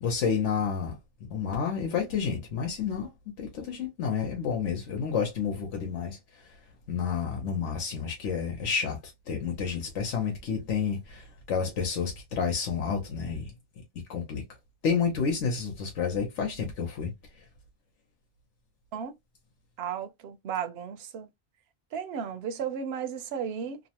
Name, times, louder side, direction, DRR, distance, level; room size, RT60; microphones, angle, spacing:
voice 1, 0.0-0.9 1.2-3.1 3.4-6.2 6.9-13.5 14.1-14.4 14.8-17.1, left 6 dB, 85° left, 1.1 m, -30 dB
voice 2, 19.8-21.3 21.9-23.8, right 7 dB, 65° right, 0.8 m, -34 dB
2.8 x 2.1 x 2.8 m
omnidirectional pair, 1.2 m